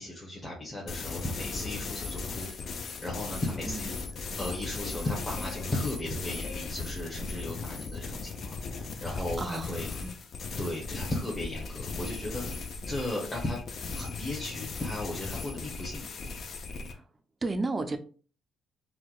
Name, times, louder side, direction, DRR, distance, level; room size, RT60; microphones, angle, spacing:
voice 1, 0.0-3.9 4.4-9.9 10.6-13.6 13.9-16.3, left 1 dB, 15° left, 0.9 m, -36 dB
sound 1, 0.9-16.9, left 4 dB, 50° left, 0.4 m, -37 dB
voice 2, 9.0-10.1 16.9-17.0 17.4-18.0, right 2 dB, 25° right, 0.4 m, -34 dB
4.4 x 2.2 x 2.3 m
cardioid pair, 115°, 0 cm